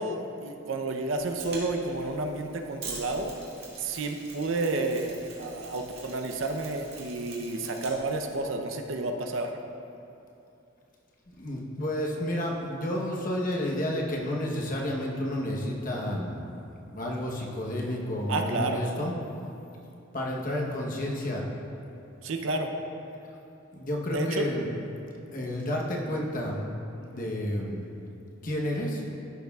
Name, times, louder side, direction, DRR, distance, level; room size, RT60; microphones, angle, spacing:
voice 1, 0.0-3.3 3.8-9.5 18.3-18.8 22.2-22.7 24.1-24.5, right 2 dB, 70° right, 4 dB, 0.6 m, -31 dB
Mechanisms, 1.2-8.4, right 3 dB, 50° right, 2.0 m, -45 dB
voice 2, 11.4-16.5 16.9-19.1 20.1-21.5 23.7-24.7 25.3-26.7 27.1-27.9 28.4-29.0, left 1 dB, 40° left, -1 dB, 1.0 m, -30 dB
14.0 x 6.5 x 2.4 m, 2.7 s
head